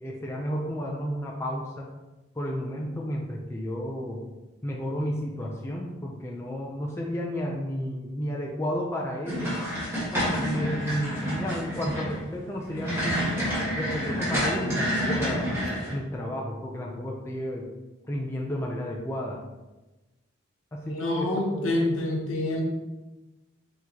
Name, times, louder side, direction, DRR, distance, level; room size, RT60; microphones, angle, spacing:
voice 1, 0.0-1.9 2.4-4.2 4.6-9.6 10.1-13.2 13.7-15.5 15.9-17.7 18.1-19.4 20.7-21.7, equal, 15° left, -2 dB, 0.4 m, -32 dB
sound 1, 9.3-15.9, equal, 10° right, 1.3 m, -29 dB
voice 2, 20.9-22.6, left 1 dB, 75° left, -1 dB, 1.1 m, -27 dB
4.5 x 3.7 x 2.8 m, 1.1 s
head